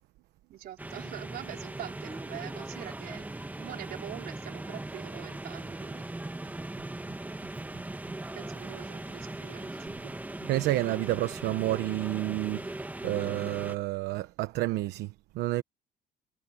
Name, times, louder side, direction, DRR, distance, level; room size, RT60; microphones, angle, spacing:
voice 1, 0.5-6.1 8.3-9.9, right 12 dB, 70° right, 4.6 m, -44 dB
sound 1, 0.8-13.8, right 2 dB, 10° right, 1.5 m, -39 dB
voice 2, 10.4-15.6, right 17 dB, 85° right, 1.0 m, -30 dB
cardioid pair, 110°, 17 cm